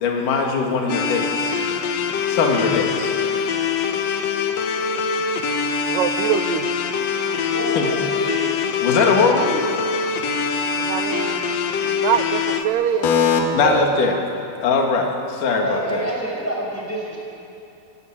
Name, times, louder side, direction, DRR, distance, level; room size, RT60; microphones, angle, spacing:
voice 1, 0.0-1.6 2.3-3.1 7.8-7.9 8.8-9.7 13.0-14.2 14.6-16.1, left 4 dB, 55° left, 1 dB, 3.4 m, -20 dB
sound 1, 0.9-12.6, left 6 dB, 90° left, 1.4 m, -23 dB
voice 2, 5.9-6.8 10.8-11.5 11.8-13.1 13.6-14.2, right 9 dB, 75° right, 8 dB, 2.0 m, -24 dB
voice 3, 7.5-8.5 15.6-17.2, right 1 dB, 5° left, -3 dB, 5.5 m, -27 dB
27.0 x 16.0 x 8.9 m, 2.7 s
omnidirectional pair, 4.7 m